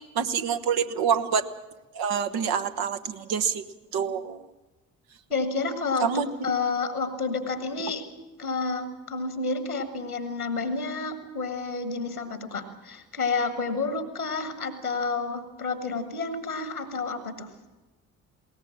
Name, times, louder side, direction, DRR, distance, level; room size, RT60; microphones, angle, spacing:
voice 1, 0.1-1.4 1.9-3.6 3.9-4.4 6.0-6.3, right 7 dB, 55° right, 9 dB, 1.3 m, -26 dB
voice 2, 5.3-8.1 8.4-17.5, left 4 dB, 90° left, 10 dB, 1.6 m, -30 dB
21.0 x 18.5 x 7.4 m, 1.1 s
figure-of-eight pair, 45°, 43 cm